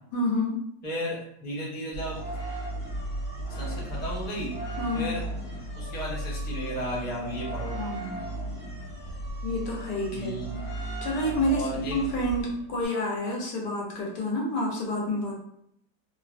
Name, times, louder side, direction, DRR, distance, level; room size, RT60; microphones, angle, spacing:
voice 1, 0.1-0.6 4.8-5.1 7.7-8.2 9.4-10.4 11.0-11.6 11.9-15.3, left 1 dB, 80° left, -2 dB, 1.4 m, -28 dB
voice 2, 0.8-2.2 3.5-4.6 4.9-5.2 5.8-7.8 10.1-10.6 11.5-12.0, equal, 10° left, -7 dB, 0.4 m, -34 dB
sound 1, 1.9-12.8, right 1 dB, 40° left, 1.0 m, -35 dB
3.3 x 2.1 x 2.4 m, 0.74 s
omnidirectional pair, 1.8 m